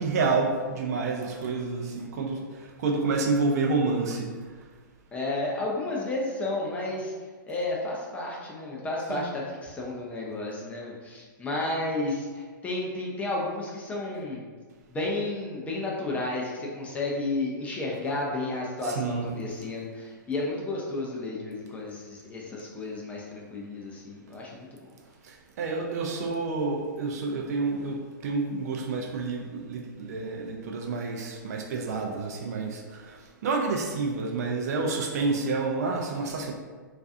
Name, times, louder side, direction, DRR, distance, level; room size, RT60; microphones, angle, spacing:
voice 1, 0.0-4.3 9.1-9.3 18.8-19.3 25.2-36.5, right 3 dB, 50° right, 1 dB, 0.4 m, -29 dB
voice 2, 5.1-7.1 7.5-14.4 14.9-24.9, left 2 dB, 15° left, -3 dB, 0.4 m, -32 dB
2.4 x 2.3 x 2.5 m, 1.5 s
figure-of-eight pair, 115°, 11 cm